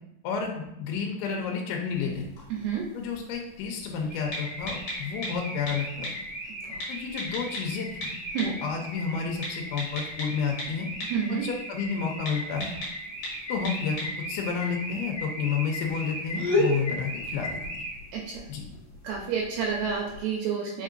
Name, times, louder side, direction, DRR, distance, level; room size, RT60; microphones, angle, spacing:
voice 1, 0.2-2.3 2.9-6.1 6.9-8.1 8.4-10.9 11.3-12.7 13.5-17.8 18.5-18.6, left 6 dB, 85° left, 1 dB, 2.4 m, -31 dB
sound 1, 1.9-20.2, left 2 dB, 60° left, 2.1 m, -37 dB
voice 2, 2.5-2.8 6.7-6.8 8.3-8.5 11.0-11.4 18.1-18.4 19.0-20.8, right 7 dB, 80° right, -1 dB, 2.4 m, -29 dB
Car / Alarm, 4.1-18.2, equal, 45° left, 2.0 m, -38 dB
5.4 x 3.6 x 2.5 m, 0.85 s
omnidirectional pair, 4.5 m